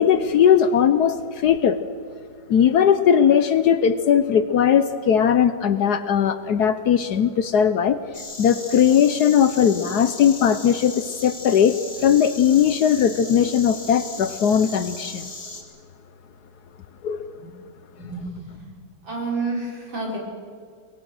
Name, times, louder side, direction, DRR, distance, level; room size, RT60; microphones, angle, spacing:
voice 1, 0.0-1.8 2.5-8.0 8.4-11.8 12.0-15.3 17.0-17.3, left 8 dB, 65° left, 12 dB, 1.2 m, -18 dB
Insect, 8.1-15.6, left 3 dB, 45° left, 3.1 m, -37 dB
voice 2, 18.0-18.7 19.0-20.2, right 3 dB, 85° right, -2 dB, 5.8 m, -30 dB
24.0 x 21.5 x 6.3 m, 2.1 s
omnidirectional pair, 2.1 m